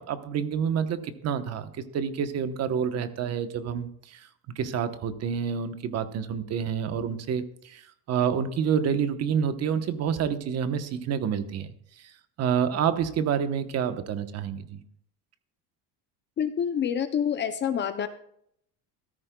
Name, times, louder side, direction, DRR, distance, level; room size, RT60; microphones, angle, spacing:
voice 1, 0.0-4.2 4.6-7.8 8.1-11.7 12.4-14.8, right 7 dB, 40° right, 10 dB, 1.0 m, -28 dB
voice 2, 16.4-18.1, left 8 dB, 30° left, 9 dB, 0.5 m, -27 dB
14.0 x 13.5 x 2.3 m, 0.68 s
cardioid pair, 155°, 39 cm